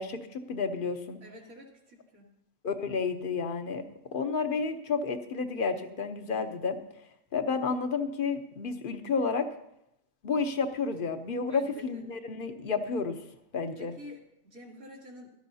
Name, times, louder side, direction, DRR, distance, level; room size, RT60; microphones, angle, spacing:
voice 1, 0.0-1.2 2.6-3.8 4.1-6.8 7.3-9.5 10.2-13.2 13.5-13.9, left 5 dB, 45° left, 7 dB, 0.9 m, -31 dB
voice 2, 1.2-2.3 11.5-12.0 13.8-15.3, left 1 dB, 85° right, -4 dB, 3.0 m, -48 dB
16.5 x 12.5 x 2.8 m, 0.80 s
omnidirectional pair, 1.4 m